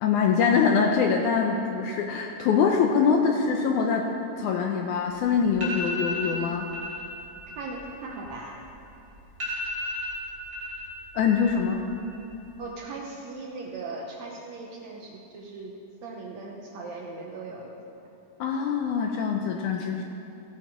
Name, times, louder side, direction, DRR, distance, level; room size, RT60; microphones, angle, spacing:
voice 1, 0.0-4.1 4.4-6.7 11.2-11.8 18.4-20.0, left 6 dB, 75° left, 2 dB, 1.8 m, -24 dB
sound 1, 5.1-5.2 5.5-6.4 6.7-7.0 7.4-8.8 9.1-9.2 9.4-10.8 11.1-11.7 12.0-12.6, left 1 dB, 25° right, 3.3 m, -34 dB
voice 2, 7.6-8.6 12.6-15.7 16.0-17.7, right 3 dB, 70° right, -1 dB, 1.8 m, -38 dB
16.0 x 7.5 x 4.9 m, 2.9 s
omnidirectional pair, 4.0 m